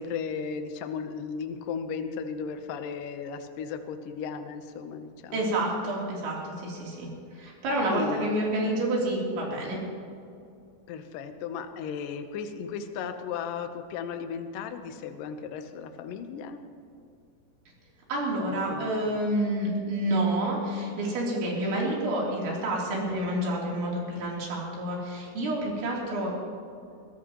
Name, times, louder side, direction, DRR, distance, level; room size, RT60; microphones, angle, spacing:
voice 1, 0.0-5.5 7.9-8.3 10.9-16.6 18.5-19.2, left 6 dB, 75° left, 7 dB, 2.0 m, -35 dB
voice 2, 5.3-9.8 18.1-26.3, right 1 dB, 90° right, -4 dB, 5.7 m, -29 dB
22.0 x 16.5 x 3.1 m, 2.5 s
omnidirectional pair, 5.1 m